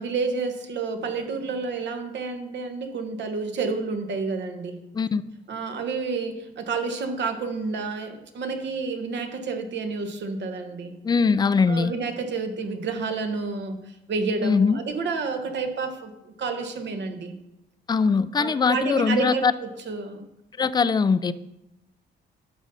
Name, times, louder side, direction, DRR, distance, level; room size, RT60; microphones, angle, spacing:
voice 1, 0.0-4.9 5.5-11.0 11.7-17.4 18.4-20.3, right 4 dB, 65° right, 6 dB, 1.2 m, -30 dB
voice 2, 11.0-11.9 14.4-14.8 17.9-19.5 20.6-21.3, left 5 dB, 20° left, 14 dB, 0.4 m, -21 dB
11.0 x 5.3 x 4.1 m, 0.91 s
cardioid pair, 90°, 20 cm